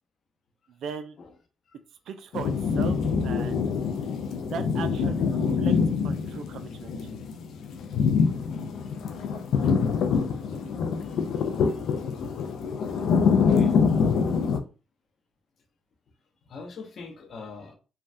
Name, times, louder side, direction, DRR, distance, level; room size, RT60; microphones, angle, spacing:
voice 1, 0.7-1.2 2.1-3.7 4.5-5.8 6.0-6.9, right 7 dB, 75° right, 0.4 m, -38 dB
sound 1, 2.3-14.6, left 5 dB, 75° left, 0.4 m, -25 dB
voice 2, 11.0-12.0 13.5-13.7 16.5-17.7, left 3 dB, 55° left, 0.8 m, -43 dB
3.3 x 2.3 x 2.6 m
cardioid pair, 90°, 0 cm